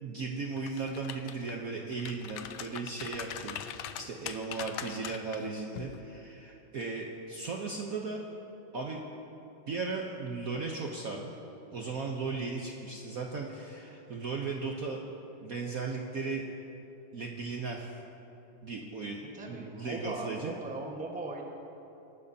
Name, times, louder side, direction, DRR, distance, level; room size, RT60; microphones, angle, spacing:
voice 1, 0.0-3.6 4.0-8.2 8.7-9.0 9.7-11.3 11.7-15.0 15.4-16.4 17.1-17.9 18.6-20.5, right 4 dB, 55° right, 0 dB, 1.0 m, -36 dB
sound 1, 0.6-1.5 1.9-5.4 5.8-6.0, left 9 dB, 75° left, 1.3 m, -41 dB
voice 2, 19.2-21.4, right 2 dB, 5° right, 0 dB, 0.9 m, -39 dB
24.0 x 12.0 x 2.8 m, 2.9 s
omnidirectional pair, 2.3 m